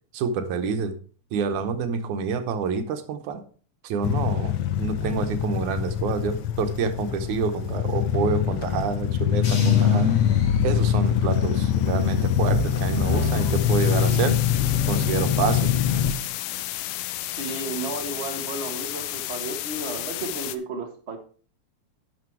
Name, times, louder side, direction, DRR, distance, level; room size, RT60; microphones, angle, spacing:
voice 1, 0.1-0.9 1.3-3.4 3.8-10.1 10.6-14.4 14.9-15.7, right 5 dB, 75° right, 9 dB, 2.3 m, -28 dB
sound 1, 4.0-16.1, left 9 dB, 70° left, 1.6 m, -24 dB
sound 2, 9.4-11.5 11.9-14.5 14.8-15.4, left 3 dB, 45° left, 2.6 m, -29 dB
sound 3, 11.3-20.6, left 15 dB, 90° left, 2.2 m, -33 dB
voice 2, 17.2-21.2, right 3 dB, 40° right, 4 dB, 0.9 m, -33 dB
11.5 x 6.2 x 4.7 m, 0.41 s
omnidirectional pair, 3.5 m